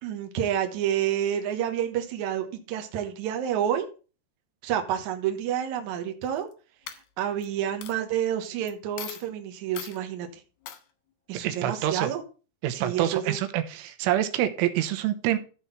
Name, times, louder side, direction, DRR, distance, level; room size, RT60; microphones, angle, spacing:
voice 1, 0.0-3.9 4.6-6.5 7.2-10.3 11.3-12.2 12.7-13.4, right 10 dB, 70° right, 5 dB, 1.8 m, -29 dB
Coin (dropping), 6.2-6.5 6.9-7.5 7.8-7.9 8.7-8.8 9.0-9.3 9.7-10.0 10.6-10.8, left 10 dB, 75° left, 2.2 m, -39 dB
voice 2, 11.4-12.1 12.6-15.4, right 12 dB, 90° right, 9 dB, 3.5 m, -26 dB
14.0 x 4.7 x 5.7 m, 0.35 s
omnidirectional pair, 5.5 m